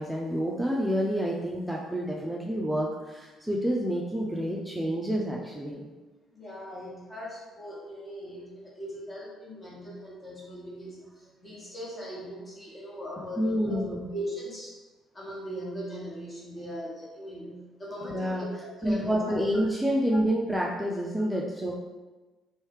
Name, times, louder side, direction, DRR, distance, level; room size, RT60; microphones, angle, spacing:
voice 1, 0.0-5.9 13.4-14.1 18.1-18.5 18.8-21.7, equal, 5° right, -3 dB, 0.5 m, -28 dB
voice 2, 6.3-13.8 14.1-14.8 15.1-18.5 18.8-19.4, equal, 30° left, -5 dB, 1.4 m, -39 dB
3.2 x 3.2 x 3.1 m, 1.2 s
supercardioid pair, 65°, 0 cm